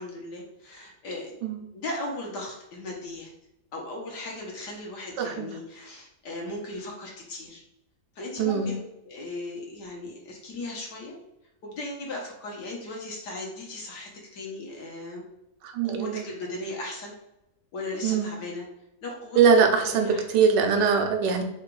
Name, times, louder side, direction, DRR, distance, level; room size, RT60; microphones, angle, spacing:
voice 1, 0.0-1.4 1.7-3.3 3.7-7.6 8.1-8.8 9.0-11.2 11.6-15.2 15.8-17.1 17.7-18.7 19.0-20.2, left 2 dB, 75° left, -2 dB, 1.7 m, -37 dB
voice 2, 5.2-5.5 8.4-8.7 15.6-16.2 18.0-18.3 19.4-21.4, right 6 dB, 85° right, 4 dB, 1.3 m, -22 dB
4.0 x 2.5 x 4.5 m, 0.86 s
omnidirectional pair, 1.8 m